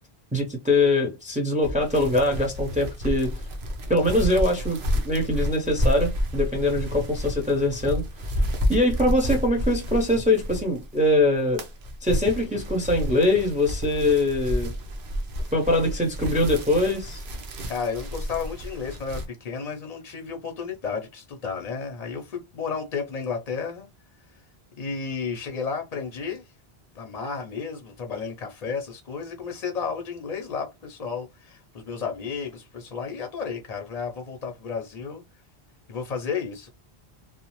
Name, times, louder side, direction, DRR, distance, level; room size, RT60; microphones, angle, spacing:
voice 1, 0.3-3.3 3.9-4.8 5.0-8.0 8.7-11.6 12.0-14.7 15.5-17.2, left 1 dB, 10° right, 0.5 m, -23 dB
sound 1, 1.6-11.0 11.3-19.2, equal, 60° right, 0.8 m, -30 dB
voice 2, 17.7-23.9 24.8-26.4 26.9-35.2 35.9-36.7, left 5 dB, 50° left, 0.5 m, -32 dB
2.8 x 2.0 x 2.9 m
omnidirectional pair, 1.0 m